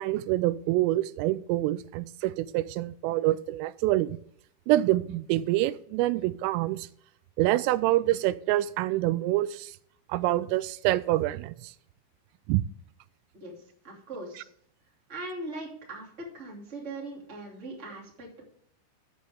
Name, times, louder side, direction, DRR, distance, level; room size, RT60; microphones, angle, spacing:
voice 1, 0.0-4.2 4.7-6.9 7.4-9.7 10.1-11.7 12.5-12.6, right 16 dB, 90° right, 17 dB, 3.1 m, -26 dB
voice 2, 13.8-14.4 15.1-18.4, right 2 dB, 20° right, -2 dB, 2.0 m, -40 dB
13.5 x 7.7 x 3.5 m, 0.65 s
omnidirectional pair, 5.7 m